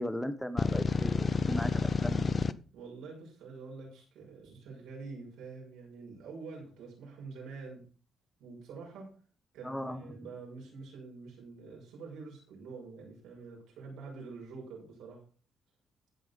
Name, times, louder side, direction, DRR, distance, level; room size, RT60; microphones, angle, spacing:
voice 1, 0.0-2.3 9.6-10.3, equal, 5° left, 11 dB, 1.1 m, -37 dB
sound 1, 0.6-2.5, left 4 dB, 35° left, 0.6 m, -29 dB
voice 2, 2.7-7.9 8.4-9.2 9.5-15.2, right 4 dB, 85° right, -2 dB, 6.3 m, -46 dB
14.5 x 5.6 x 5.3 m, 0.39 s
cardioid pair, 90°, 0 cm